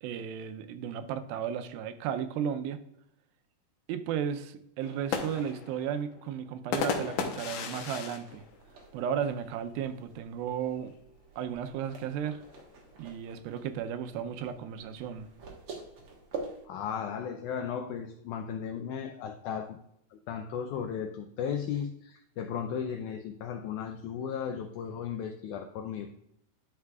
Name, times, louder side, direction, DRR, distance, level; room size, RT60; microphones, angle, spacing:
voice 1, 0.0-2.8 3.9-8.4 8.9-10.9 11.4-12.4 13.0-15.3, right 8 dB, 90° right, 9 dB, 2.5 m, -34 dB
sound 1, 4.8-9.5 9.9-10.0 10.2-10.7 11.6-13.1, left 6 dB, 70° left, 2.1 m, -36 dB
sound 2, 8.3-16.7, right 4 dB, 60° right, 1.5 m, -47 dB
voice 2, 16.6-19.8 20.1-26.2, left 7 dB, 90° left, 5 dB, 1.7 m, -35 dB
11.0 x 5.8 x 2.3 m, 0.76 s
omnidirectional pair, 4.1 m